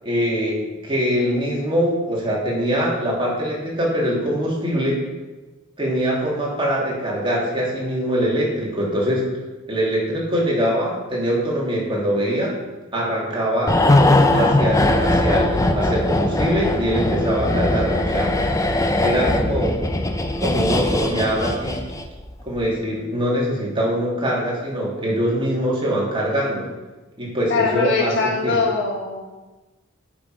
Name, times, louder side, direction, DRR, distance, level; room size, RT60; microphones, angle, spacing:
voice 1, 0.0-5.0 5.8-9.2 9.7-12.5 12.9-13.7 14.3-18.3 19.0-19.8 20.4-21.8 22.5-26.6 27.2-28.2 28.4-28.6, equal, 25° right, -4 dB, 2.8 m, -23 dB
Fast Breath, 13.7-22.2 22.5-22.7, left 1 dB, 15° left, 0.6 m, -20 dB
voice 2, 27.5-29.4, left 4 dB, 60° left, -1 dB, 1.5 m, -22 dB
9.6 x 6.2 x 4.9 m, 1.2 s
head